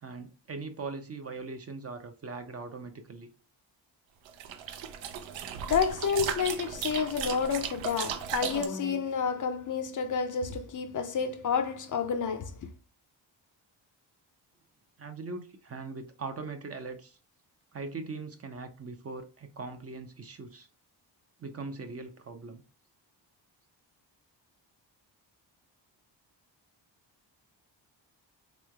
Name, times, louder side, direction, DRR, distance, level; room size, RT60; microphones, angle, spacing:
voice 1, 0.0-3.3 15.0-17.2 17.7-20.7 21.4-22.6, right 3 dB, 35° right, 0.5 m, -40 dB
sound 1, 4.3-8.7, right 8 dB, 90° right, 0.6 m, -36 dB
voice 2, 5.7-12.5, left 6 dB, 45° left, 0.5 m, -30 dB
3.6 x 3.1 x 2.2 m
cardioid pair, 100°, 44 cm